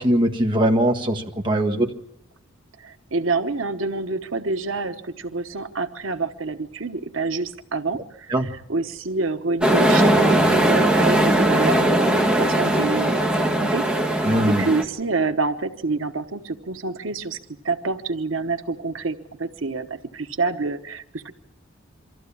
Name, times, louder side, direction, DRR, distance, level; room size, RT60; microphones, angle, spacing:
voice 1, 0.0-1.9 8.3-8.5 14.2-14.6, right 1 dB, 25° right, 3 dB, 1.6 m, -20 dB
voice 2, 2.8-13.8 14.1-17.4 17.6-21.3, right 3 dB, 85° right, 8 dB, 1.1 m, -27 dB
sound 1, 9.6-14.8, right 1 dB, 5° right, 1.7 m, -19 dB
24.0 x 14.5 x 8.6 m, 0.79 s
head